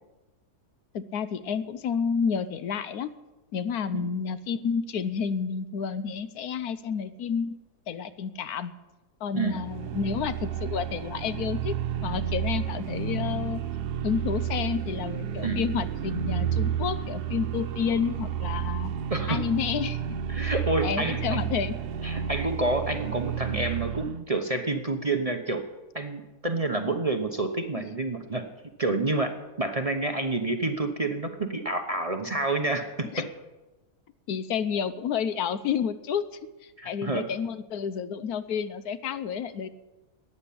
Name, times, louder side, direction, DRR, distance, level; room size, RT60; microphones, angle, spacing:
voice 1, 0.9-3.1 3.5-7.6 7.9-8.7 9.2-11.8 12.0-13.6 14.0-18.9 19.3-20.2 20.8-21.8 27.8-27.9 33.1-33.3 34.3-36.2 36.6-39.7, left 7 dB, 75° left, 14 dB, 1.2 m, -30 dB
sound 1, 9.4-24.2, right 9 dB, 85° right, 1.3 m, -31 dB
voice 2, 19.1-19.4 20.3-21.4 22.0-25.6 25.9-28.4 28.8-29.3 29.6-32.9 36.8-37.3, right 2 dB, 30° right, 6 dB, 0.9 m, -28 dB
14.0 x 9.7 x 8.5 m, 1.1 s
omnidirectional pair, 1.7 m